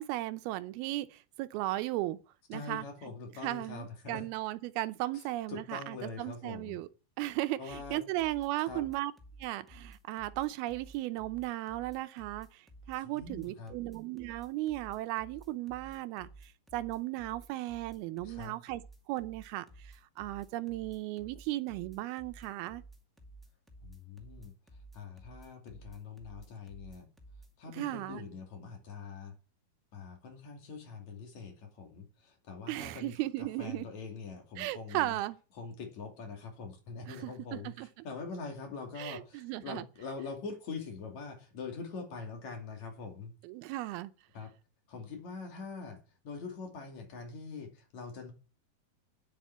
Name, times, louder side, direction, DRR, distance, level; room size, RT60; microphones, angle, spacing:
voice 1, 0.0-2.2 2.5-2.8 3.4-6.9 7.2-9.1 9.4-22.8 27.7-28.3 32.7-33.9 34.6-35.4 37.1-37.9 39.0-39.8 43.4-44.1, right 17 dB, 85° right, 2.7 m, -36 dB
voice 2, 2.5-4.2 5.1-6.8 7.6-8.0 8.7-8.9 13.0-13.7 18.2-18.6 23.8-24.5 24.9-27.1 27.6-29.4 29.9-35.2 35.5-43.3 44.3-44.5 44.9-46.0 46.2-48.3, left 4 dB, 50° left, 3.6 m, -44 dB
sound 1, 7.7-27.5, right 2 dB, ahead, 0.7 m, -53 dB
10.0 x 7.5 x 9.3 m
omnidirectional pair, 4.4 m